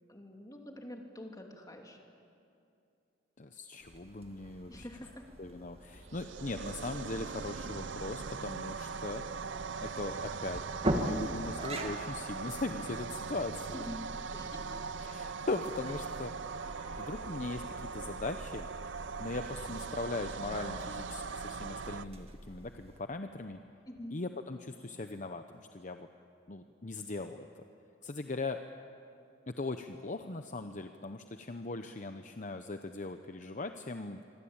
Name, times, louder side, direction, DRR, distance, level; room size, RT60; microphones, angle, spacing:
voice 1, 0.1-2.0 4.7-5.2 13.7-14.8 23.9-24.2, left 1 dB, 20° left, 2 dB, 3.0 m, -46 dB
voice 2, 3.4-4.8 5.4-9.3 9.8-10.6 11.0-13.9 15.0-16.3 17.0-18.7 19.2-23.6 24.1-26.1 26.5-27.5 28.0-28.6 29.5-34.2, left 2 dB, 40° left, 7 dB, 0.9 m, -39 dB
sound 1, 3.8-23.0, right 1 dB, 35° right, 2.2 m, -43 dB
sound 2, 6.0-22.1, right 5 dB, 70° right, 0.6 m, -40 dB
26.0 x 24.5 x 8.9 m, 2.6 s
head